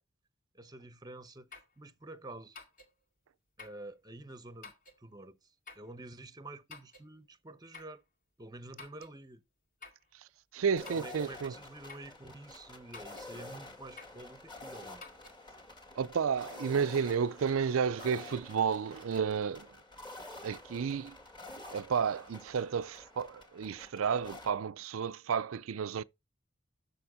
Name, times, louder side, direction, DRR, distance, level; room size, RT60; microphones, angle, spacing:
voice 1, 0.5-1.5 1.8-2.6 3.6-8.0 8.4-9.4 10.9-15.1, right 2 dB, 20° right, 0.8 m, -49 dB
sound 1, 1.5-1.8 2.5-2.9 3.6-3.8 4.6-5.0 5.7-5.9 6.7-7.1 7.7-8.0 8.8-9.2 9.8-10.1 10.9-11.2 11.9-12.1 12.9-13.3 14.0-14.2 15.0-15.4, left 4 dB, 40° left, 2.0 m, -51 dB
voice 2, 10.5-11.5 16.0-19.8 20.4-21.2 21.7-26.0, right 6 dB, 75° right, 0.4 m, -32 dB
sound 2, 10.8-24.5, left 2 dB, 20° left, 2.0 m, -49 dB
7.1 x 6.9 x 4.9 m
head